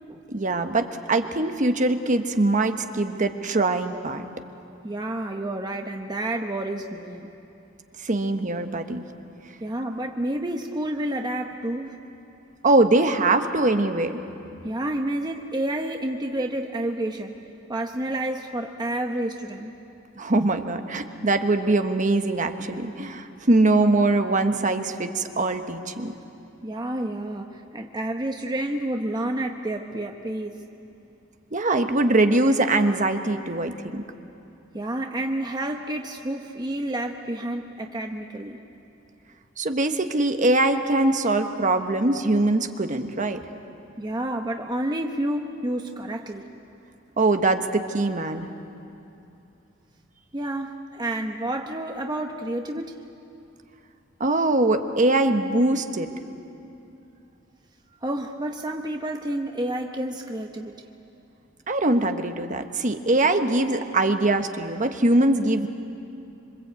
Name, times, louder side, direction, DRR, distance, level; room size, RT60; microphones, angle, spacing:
voice 1, 0.3-4.2 8.0-9.1 12.6-14.2 20.2-26.1 31.5-34.0 39.6-43.4 47.2-48.5 54.2-56.1 61.7-65.7, right 2 dB, 40° right, 7 dB, 1.2 m, -22 dB
voice 2, 4.8-7.3 9.6-12.0 14.6-17.3 17.7-19.7 26.6-30.6 34.7-38.6 44.0-46.4 50.3-53.0 58.0-60.8, right 1 dB, 20° right, 3 dB, 0.9 m, -29 dB
26.0 x 25.0 x 8.3 m, 2.8 s
head